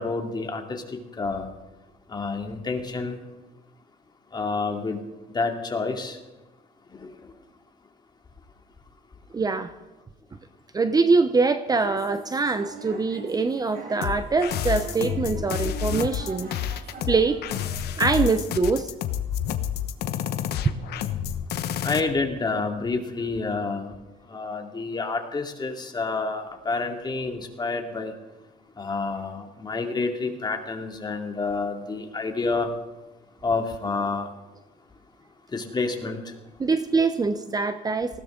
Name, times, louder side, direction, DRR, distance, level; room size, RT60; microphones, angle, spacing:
voice 1, 0.0-1.5 2.1-3.2 4.3-5.0 5.3-6.2 6.9-7.1 21.8-23.9 24.3-28.1 28.8-32.7 33.4-34.3 35.5-36.2, left 3 dB, 25° left, 3 dB, 2.5 m, -29 dB
voice 2, 9.3-9.7 10.7-16.8 17.1-17.4 18.0-18.9 20.6-20.8 36.6-38.2, right 4 dB, 20° right, 10 dB, 0.8 m, -23 dB
sound 1, 11.7-18.4, right 3 dB, 60° right, 6.6 m, -41 dB
sound 2, 14.0-22.0, left 10 dB, 75° left, 1.1 m, -29 dB
19.5 x 16.5 x 3.9 m, 1.1 s
cardioid pair, 110°, 17 cm